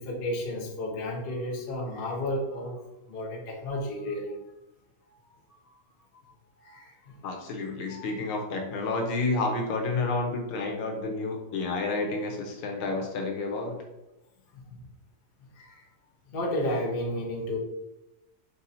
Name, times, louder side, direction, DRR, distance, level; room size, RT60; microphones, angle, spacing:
voice 1, 0.0-2.8 3.1-4.4 5.5-5.6 6.6-6.9 7.6-8.1 14.5-14.8 15.6-15.8 16.3-17.6, left 1 dB, 60° left, -2 dB, 0.5 m, -32 dB
voice 2, 7.2-13.8, left 3 dB, 80° left, 2 dB, 1.6 m, -30 dB
3.7 x 2.7 x 4.1 m, 0.93 s
omnidirectional pair, 2.3 m